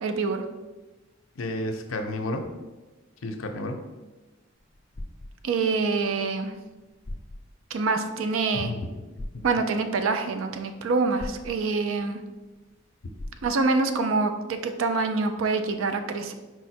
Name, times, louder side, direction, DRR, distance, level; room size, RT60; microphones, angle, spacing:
voice 1, 0.0-0.4 5.4-6.5 7.7-8.7 9.4-12.2 13.4-16.3, right 4 dB, 85° right, 8 dB, 0.4 m, -26 dB
voice 2, 1.4-2.5 3.2-3.8 8.5-8.9, left 1 dB, 85° left, 6 dB, 0.5 m, -31 dB
sound 1, 4.6-5.3 6.6-6.7 7.0-7.4 9.2-9.5 11.2-11.6 13.2-13.6, left 1 dB, 30° left, 0.4 m, -38 dB
4.6 x 2.1 x 4.2 m, 1.2 s
head